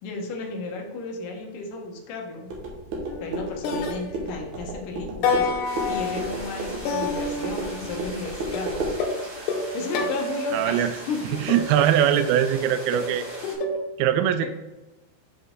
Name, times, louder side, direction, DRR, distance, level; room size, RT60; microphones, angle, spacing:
voice 1, 0.0-2.5 3.2-8.7 9.5-11.5, left 4 dB, 65° left, 1 dB, 2.5 m, -34 dB
sound 1, 2.5-9.0, right 2 dB, 60° right, 2.2 m, -32 dB
sound 2, 3.1-3.4 3.6-4.7 5.2-8.1 8.5-10.7 11.5-13.8, left 3 dB, 80° left, 3.0 m, -29 dB
sound 3, 5.6-13.5, right 1 dB, 30° right, 1.5 m, -41 dB
voice 2, 10.5-10.9 11.4-13.3 14.0-14.5, right 10 dB, 85° right, 10 dB, 2.2 m, -21 dB
7.7 x 5.6 x 3.8 m, 1.1 s
omnidirectional pair, 4.8 m